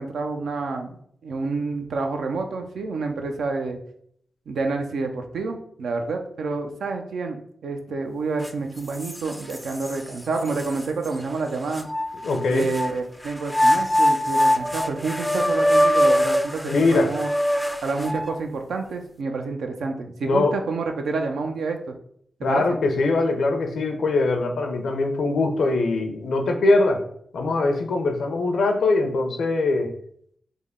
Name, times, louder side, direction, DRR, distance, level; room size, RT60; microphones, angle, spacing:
voice 1, 0.0-3.8 4.5-7.4 7.6-11.9 12.5-17.3 17.8-21.9 22.4-22.6, right 3 dB, 85° right, 4 dB, 0.4 m, -28 dB
sound 1, 8.4-8.5 9.0-9.9 10.6-10.7 11.8-12.9 13.5-18.4, equal, 5° left, 0.3 m, -22 dB
voice 2, 12.2-12.7 16.6-17.1 20.2-20.5 22.4-27.0 27.3-29.9, left 3 dB, 80° left, 5 dB, 0.5 m, -22 dB
3.4 x 2.1 x 3.5 m, 0.66 s
cardioid pair, 45°, 0 cm